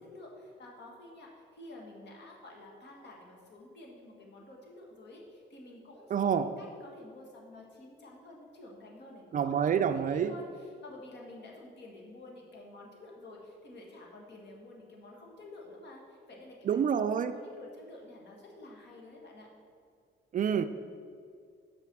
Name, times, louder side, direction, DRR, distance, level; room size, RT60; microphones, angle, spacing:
voice 1, 0.0-6.3 6.6-16.6 17.1-19.5, left 2 dB, 60° left, -1 dB, 1.8 m, -50 dB
voice 2, 6.1-6.6 9.3-10.4 16.6-17.3 20.3-20.6, right 7 dB, 45° right, 10 dB, 0.4 m, -27 dB
5.7 x 5.5 x 6.1 m, 2.3 s
cardioid pair, 90°, 20 cm